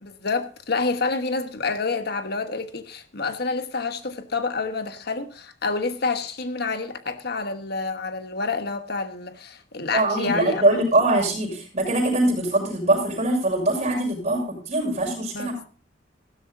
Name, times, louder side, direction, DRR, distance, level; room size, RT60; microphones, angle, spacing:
voice 1, 0.0-10.8 15.3-15.5, left 4 dB, 55° left, 1.3 m, -28 dB
voice 2, 9.9-15.6, right 2 dB, 40° right, 6.3 m, -22 dB
15.5 x 13.0 x 2.6 m
head